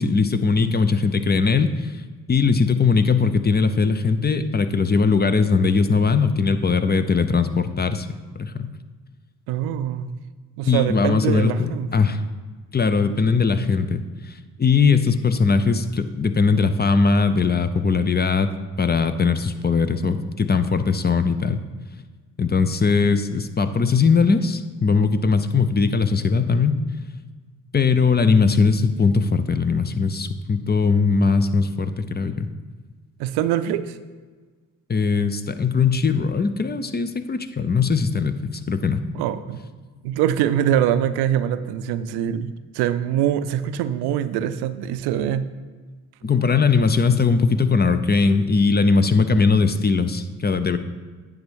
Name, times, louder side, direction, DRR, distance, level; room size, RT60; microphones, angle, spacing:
voice 1, 0.0-1.9 2.3-8.1 8.4-8.7 10.6-12.2 12.7-21.6 22.4-26.8 27.7-32.5 34.9-39.1 46.2-50.8, left 4 dB, 25° left, 11 dB, 0.7 m, -20 dB
voice 2, 9.5-10.1 10.6-11.9 33.2-34.0 39.1-39.6 40.0-45.5, right 10 dB, 90° right, 12 dB, 0.5 m, -23 dB
9.5 x 3.6 x 7.0 m, 1.4 s
supercardioid pair, 55°, 38 cm